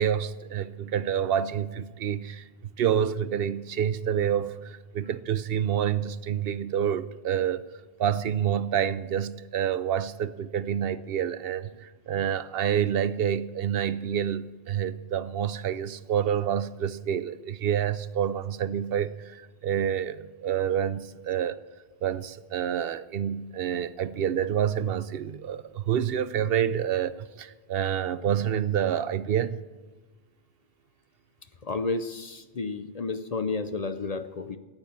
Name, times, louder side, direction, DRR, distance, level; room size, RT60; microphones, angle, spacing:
voice 1, 0.0-7.6 8.0-21.6 22.0-29.6, right 9 dB, 70° right, 0.8 m, -28 dB
voice 2, 31.6-34.6, left 3 dB, 45° left, 0.6 m, -31 dB
15.0 x 9.0 x 7.2 m
omnidirectional pair, 1.1 m